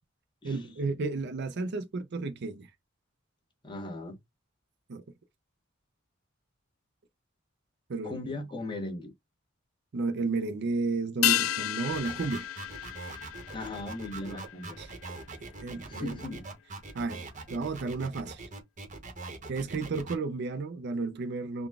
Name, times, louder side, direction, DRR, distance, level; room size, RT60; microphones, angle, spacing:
voice 1, 0.4-2.7 4.9-5.0 7.9-8.2 9.9-12.5 14.2-14.4 14.8-14.9 15.6-16.1 16.9-17.2 17.5-18.5 19.5-21.7, right 3 dB, 55° right, 0.5 m, -32 dB
voice 2, 3.6-4.2 8.0-9.1 13.5-14.8 15.9-16.4, left 2 dB, 25° left, 1.1 m, -38 dB
sound 1, 11.2-15.9 16.2-16.3, left 14 dB, 85° left, 0.3 m, -32 dB
sound 2, 11.9-20.2, right 3 dB, 40° right, 0.9 m, -42 dB
3.9 x 2.2 x 3.4 m
head